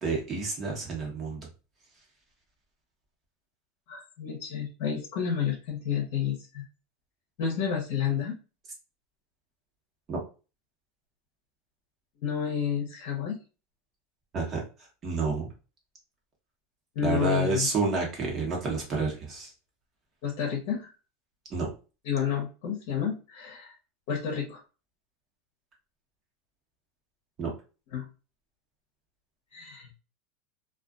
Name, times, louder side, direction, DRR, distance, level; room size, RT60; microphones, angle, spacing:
voice 1, 0.0-1.5 10.1-10.2 14.3-14.6 15.0-15.5 17.0-19.5 21.5-21.7 27.4-27.5, right 3 dB, 30° right, 0 dB, 1.1 m, -29 dB
voice 2, 3.9-6.7 7.4-8.3 12.2-13.4 16.9-17.7 20.2-20.9 22.0-23.7 24.1-24.6 27.9-28.1 29.5-29.9, left 8 dB, 65° left, 1 dB, 0.8 m, -30 dB
2.5 x 2.4 x 2.4 m, 0.33 s
supercardioid pair, 130°, 0 cm